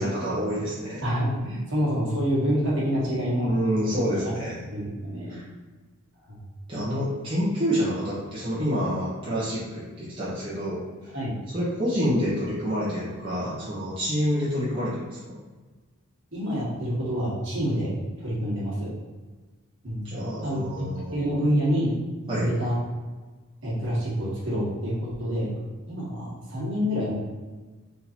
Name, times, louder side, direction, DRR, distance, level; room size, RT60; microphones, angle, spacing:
voice 1, 0.0-1.0 3.4-4.5 5.3-5.5 6.7-11.1 11.5-15.4 20.0-21.5 22.3-22.5, equal, 25° right, -10 dB, 1.1 m, -28 dB
voice 2, 1.0-3.5 4.2-4.3 4.7-5.4 6.3-6.4 11.1-11.3 16.3-18.9 19.8-20.0 20.4-21.9 22.3-22.8 23.6-25.5 25.9-27.1, equal, 55° right, -7 dB, 1.5 m, -27 dB
3.8 x 2.8 x 4.2 m, 1.3 s
head